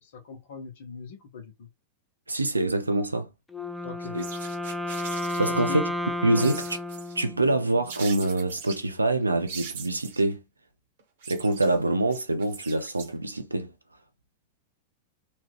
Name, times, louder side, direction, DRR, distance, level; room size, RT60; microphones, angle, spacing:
voice 1, 0.0-1.7 3.8-4.2 5.5-5.8 6.3-6.6, left 6 dB, 55° left, 0.9 m, -40 dB
voice 2, 2.3-3.3 4.1-4.2 5.4-5.9 6.2-6.6 7.2-10.4 11.3-13.7, right 2 dB, 80° right, 0.5 m, -25 dB
Wind instrument woodwind instrument, 3.5-7.7, left 1 dB, 10° left, 0.5 m, -32 dB
sound 1, 4.2-5.7 6.4-7.2 7.9-8.8 9.5-10.3 11.0-13.4, right 6 dB, 60° right, 1.0 m, -41 dB
3.0 x 2.3 x 3.1 m
figure-of-eight pair, 90°, 0 cm